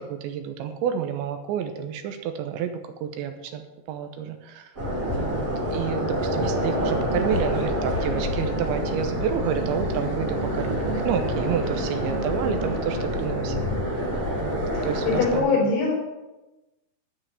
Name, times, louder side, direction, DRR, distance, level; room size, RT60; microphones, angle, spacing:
voice 1, 0.0-3.6 3.9-4.7 5.2-13.5 14.4-14.6 14.8-15.7, right 8 dB, 80° right, 7 dB, 3.1 m, -30 dB
sound 1, 4.8-15.4, equal, 25° right, 2.0 m, -27 dB
sound 2, 6.5-12.8, right 3 dB, 30° left, 4.0 m, -35 dB
voice 2, 14.7-15.9, left 4 dB, 75° left, -4 dB, 6.9 m, -23 dB
12.5 x 5.7 x 8.4 m, 1.1 s
omnidirectional pair, 5.4 m